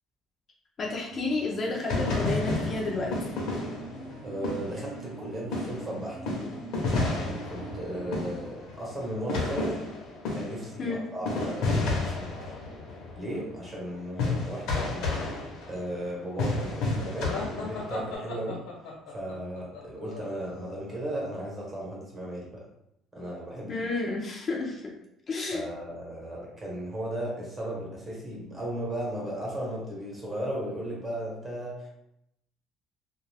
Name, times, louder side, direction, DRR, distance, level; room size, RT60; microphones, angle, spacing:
voice 1, 0.8-3.1 10.8-11.0 23.7-24.9 25.3-25.6, left 3 dB, 35° left, -3 dB, 0.5 m, -31 dB
sound 1, 1.1-8.5, right 3 dB, 65° right, 0.4 m, -43 dB
sound 2, 1.9-5.2 5.5-18.1, left 3 dB, 70° left, 0.8 m, -31 dB
voice 2, 4.2-6.2 6.9-9.8 10.3-12.5 13.1-15.1 15.7-18.6 19.1-22.6 23.1-23.9 25.5-31.9, right 1 dB, 20° right, -4 dB, 0.9 m, -36 dB
Male Short Laugh Crazy, 17.3-21.0, left 3 dB, 90° left, 1.0 m, -38 dB
2.5 x 2.3 x 3.3 m, 0.80 s
cardioid pair, 150°, 0 cm